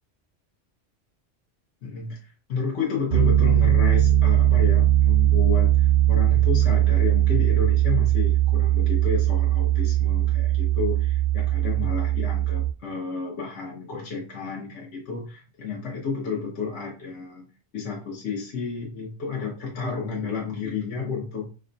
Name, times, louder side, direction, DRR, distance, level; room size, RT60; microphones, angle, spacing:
voice 1, 1.8-2.2 2.5-17.5 17.7-21.5, left 5 dB, 70° left, -3 dB, 1.2 m, -31 dB
Piano, 3.1-12.7, right 12 dB, 50° right, 0.6 m, -20 dB
4.2 x 2.2 x 3.8 m, 0.36 s
omnidirectional pair, 1.2 m